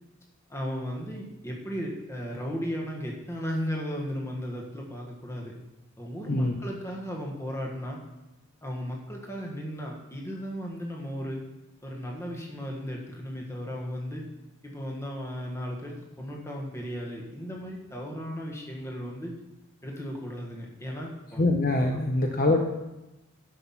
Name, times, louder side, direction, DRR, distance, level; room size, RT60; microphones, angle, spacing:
voice 1, 0.5-5.6 6.0-8.0 8.6-11.4 11.8-14.2 14.6-19.4 19.8-21.4 21.8-22.0, equal, 15° left, -1 dB, 1.5 m, -35 dB
voice 2, 21.4-22.6, left 2 dB, 40° left, 3 dB, 0.8 m, -24 dB
11.5 x 6.0 x 5.8 m, 0.99 s
head